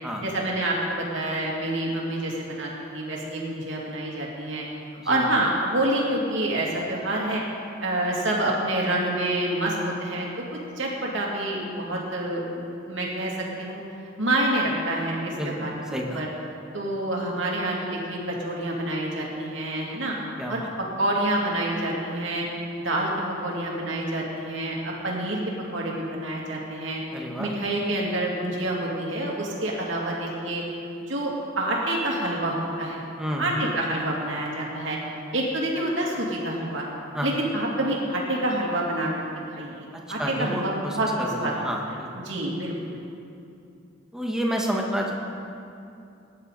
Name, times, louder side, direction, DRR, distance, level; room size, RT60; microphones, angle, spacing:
voice 1, 0.2-4.6 5.0-7.4 7.8-13.3 13.6-13.8 14.2-16.3 16.7-20.1 20.5-20.6 21.0-22.5 22.8-23.1 23.4-25.4 25.7-27.0 27.4-30.6 31.1-33.0 33.4-35.0 35.3-36.8 37.2-39.3 39.5-41.5 42.2-43.0, right 1 dB, 70° right, -3 dB, 2.7 m, -27 dB
voice 2, 15.3-16.2 20.4-20.7 27.1-27.5 33.2-33.7 37.1-37.4 40.2-42.1 44.1-45.1, equal, 5° right, -1 dB, 1.4 m, -30 dB
20.0 x 10.5 x 4.1 m, 2.6 s
head